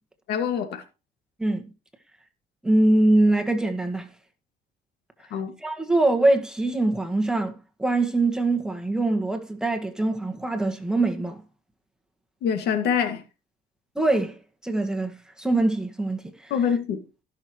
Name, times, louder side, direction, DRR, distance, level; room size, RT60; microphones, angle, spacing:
voice 1, 0.3-0.8 5.3-5.5 12.4-13.2 16.5-17.0, left 7 dB, 75° left, 2.0 m, -25 dB
voice 2, 2.6-4.1 5.6-11.4 13.9-14.4 14.6-16.5, right 2 dB, 5° right, 1.7 m, -23 dB
16.0 x 6.4 x 3.1 m
cardioid pair, 110°, 17 cm